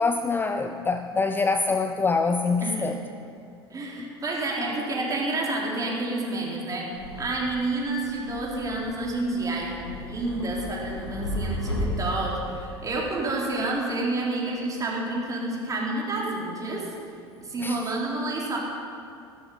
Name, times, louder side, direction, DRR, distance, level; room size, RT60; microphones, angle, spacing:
voice 1, 0.0-3.0 17.6-17.8, left 4 dB, 15° left, 7 dB, 0.6 m, -25 dB
voice 2, 3.7-6.9 7.2-16.9 17.4-18.6, right 2 dB, 25° right, -3 dB, 3.9 m, -29 dB
sound 1, 6.9-13.1, left 1 dB, 90° left, 2.0 m, -35 dB
14.5 x 13.0 x 5.5 m, 2.4 s
figure-of-eight pair, 70°, 14 cm